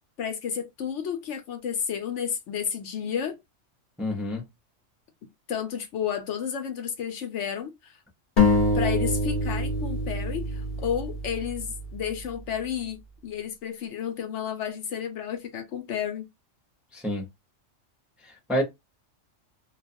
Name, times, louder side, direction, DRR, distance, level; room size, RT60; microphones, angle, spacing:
voice 1, 0.2-3.4 5.5-8.0 8.7-13.0 13.2-16.3, left 8 dB, 70° left, 0.9 m, -31 dB
voice 2, 4.0-4.4 16.9-17.3 18.2-18.6, equal, ahead, 0.5 m, -28 dB
sound 1, 8.4-12.0, left 2 dB, 45° left, 0.9 m, -25 dB
2.4 x 2.3 x 2.6 m
omnidirectional pair, 1.3 m